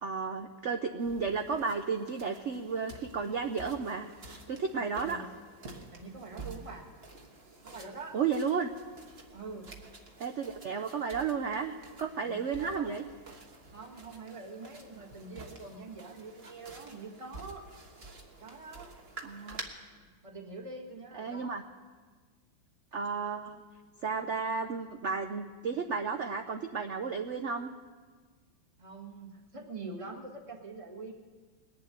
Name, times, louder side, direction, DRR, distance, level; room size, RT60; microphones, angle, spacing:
voice 1, 0.0-4.1 4.5-5.3 8.1-8.7 10.2-13.0 19.2-19.6 21.1-21.6 22.9-23.6 24.0-27.7, right 5 dB, 85° right, 6 dB, 0.6 m, -33 dB
sound 1, 1.0-19.6, right 3 dB, 35° right, 1.3 m, -50 dB
voice 2, 4.7-5.3 5.9-6.9 7.6-8.2 9.3-9.7 12.2-12.9 13.7-17.6 18.4-18.9 20.0-21.6 28.8-31.1, right 3 dB, 20° right, 1 dB, 1.4 m, -45 dB
19.5 x 7.5 x 9.3 m, 1.5 s
omnidirectional pair, 2.1 m